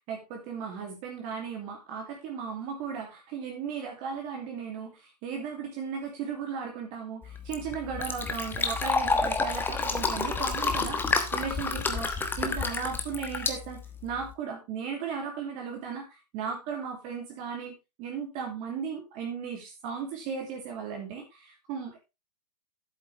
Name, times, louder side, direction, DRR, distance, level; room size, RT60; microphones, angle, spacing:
voice 1, 0.1-17.7 18.0-22.0, right 6 dB, 35° right, 1 dB, 2.6 m, -36 dB
Fill (with liquid), 7.2-14.3, left 4 dB, 10° left, 1.2 m, -29 dB
11.0 x 8.4 x 3.3 m, 0.25 s
hypercardioid pair, 125°, 21 cm